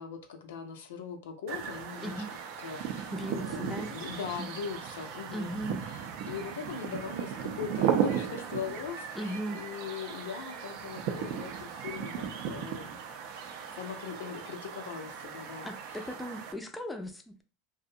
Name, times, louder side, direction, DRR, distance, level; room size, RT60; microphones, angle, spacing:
voice 1, 0.0-2.2 2.6-5.5 5.8-13.0 13.5-16.0, left 7 dB, 85° left, 5 dB, 0.5 m, -41 dB
sound 1, 1.5-16.5, right 8 dB, 65° right, 0.4 m, -36 dB
voice 2, 2.0-2.3 3.1-4.0 4.4-4.5 5.3-5.9 9.1-9.6 15.6-17.4, equal, 10° left, 5 dB, 0.4 m, -37 dB
2.5 x 2.1 x 2.6 m, 0.33 s
supercardioid pair, 110°, 0 cm